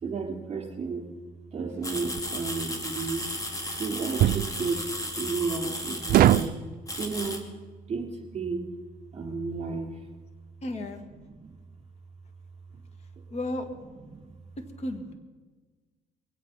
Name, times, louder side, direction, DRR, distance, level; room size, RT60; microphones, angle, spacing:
voice 1, 0.0-1.1 1.5-3.3 3.7-4.9 5.1-6.5 7.0-7.4 7.9-8.6 9.1-9.9 11.2-11.5 13.9-14.3 15.0-15.1, right 4 dB, 35° right, 0 dB, 4.0 m, -32 dB
sound 1, 1.8-6.5 6.9-7.4, left 1 dB, 20° left, 2.0 m, -35 dB
sound 2, 2.1-2.3 4.2-4.5 6.1-6.6, right 13 dB, 60° right, 0.4 m, -20 dB
voice 2, 10.6-11.0 13.3-13.7 14.8-15.1, left 1 dB, 40° left, 6 dB, 1.8 m, -33 dB
22.5 x 8.5 x 5.7 m, 1.4 s
cardioid pair, 110°, 17 cm